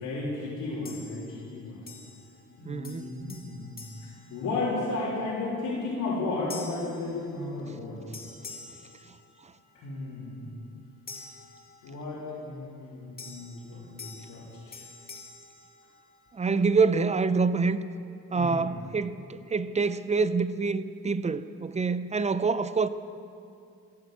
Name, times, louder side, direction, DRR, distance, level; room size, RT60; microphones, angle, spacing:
voice 1, 0.0-1.8 2.6-3.7 4.3-8.0 9.8-10.5 11.8-14.8 18.3-18.6, left 2 dB, 85° left, -8 dB, 3.6 m, -34 dB
sound 1, 0.8-1.5 1.9-2.6 2.8-5.0 5.5-5.8 6.5-7.8 8.1-9.8 11.1-12.2 13.2-16.4, left 4 dB, 30° left, 1.9 m, -47 dB
voice 2, 2.6-3.1 16.3-17.8 18.3-22.9, right 4 dB, 25° right, 14 dB, 0.5 m, -26 dB
15.5 x 8.5 x 8.0 m, 2.5 s
cardioid pair, 90°, 30 cm